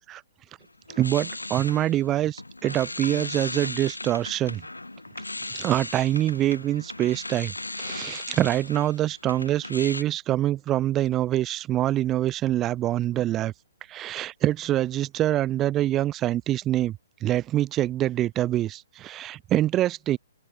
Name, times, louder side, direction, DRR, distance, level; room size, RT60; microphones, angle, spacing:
sound 1, 0.6-10.0, left 2 dB, 85° left, 0.6 m, -37 dB
voice 1, 1.0-4.6 5.5-13.5 13.9-20.2, right 13 dB, 20° right, 0.4 m, -25 dB
open air
figure-of-eight pair, 125°, 0 cm